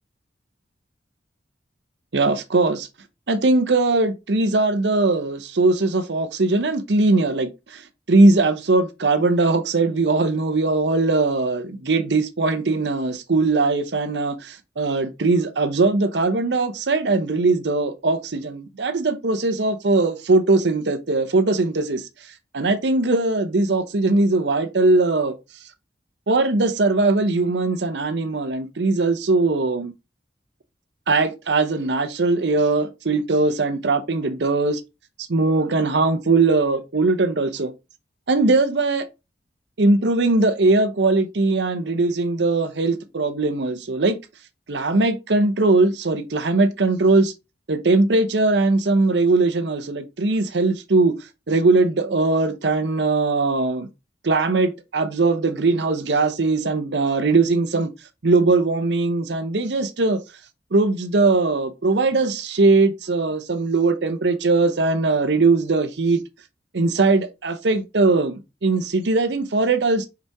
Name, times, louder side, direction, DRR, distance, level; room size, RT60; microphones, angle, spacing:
voice 1, 2.1-2.9 3.3-25.4 25.6-25.7 26.3-29.9 31.1-34.8 35.3-37.7 38.3-39.0 39.8-44.2 44.7-47.3 47.7-53.9 54.2-57.9 58.2-60.2 60.7-66.2 66.7-70.1, right 3 dB, 75° right, 0.7 m, -20 dB
5.4 x 5.0 x 3.4 m
head